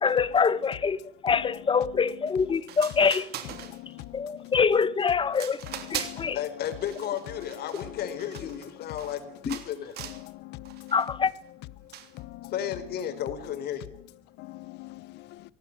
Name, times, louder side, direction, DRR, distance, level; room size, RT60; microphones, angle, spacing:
voice 1, 0.0-1.0 1.2-3.3 4.1-5.6 5.9-6.4 9.5-9.6 10.9-11.3, left 6 dB, 30° left, 1.2 m, -24 dB
sound 1, 2.4-2.5 2.7-4.1 4.5-4.9 5.3-6.3 6.6-9.2 9.5-10.3 10.7-11.1 11.9-12.2, right 10 dB, 70° right, 3.3 m, -40 dB
voice 2, 3.7-4.0 4.4-4.5 5.9-6.3 10.2-10.9 12.3-12.5 14.4-15.0, left 18 dB, 85° left, 1.0 m, -43 dB
voice 3, 6.3-9.9 12.5-13.9, left 9 dB, 70° left, 4.1 m, -33 dB
22.0 x 17.5 x 9.5 m
cardioid pair, 110°, 17 cm